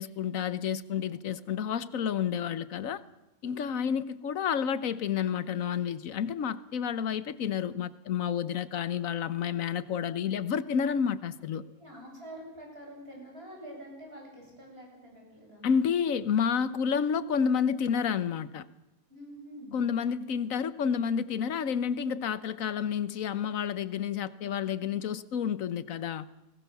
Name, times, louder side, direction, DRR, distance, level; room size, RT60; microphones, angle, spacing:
voice 1, 0.0-3.0 3.4-11.6 15.6-18.7 19.7-26.3, left 7 dB, 70° left, 1.3 m, -30 dB
voice 2, 3.6-4.0 10.6-10.7 11.8-15.7 19.1-19.8, equal, 40° right, 8.4 m, -46 dB
26.5 x 19.5 x 7.0 m
omnidirectional pair, 1.5 m